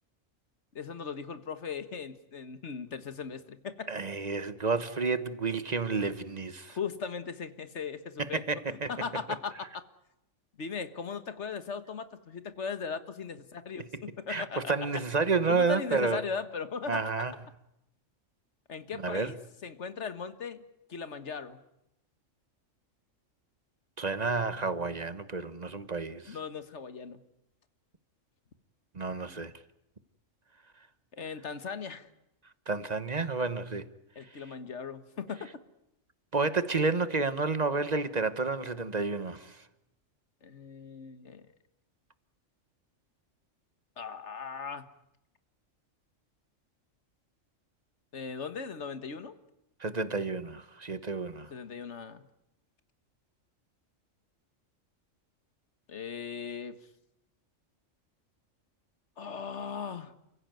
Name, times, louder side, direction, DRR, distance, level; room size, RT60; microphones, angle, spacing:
voice 1, 0.7-3.9 6.7-8.4 8.7-9.8 10.6-14.7 15.5-17.0 18.7-19.4 19.6-20.6 20.9-21.6 26.2-27.2 31.1-32.1 34.1-35.5 40.4-41.5 44.0-44.9 48.1-49.4 51.5-52.3 55.9-56.8 59.2-60.1, left 6 dB, 60° left, 1.8 m, -38 dB
voice 2, 3.9-6.8 8.2-8.9 14.3-16.2 16.9-17.3 18.9-19.3 24.0-26.4 28.9-29.5 32.7-33.9 36.3-39.6 49.8-51.5, right 4 dB, 35° right, 1.2 m, -30 dB
29.5 x 16.0 x 9.2 m
omnidirectional pair, 1.3 m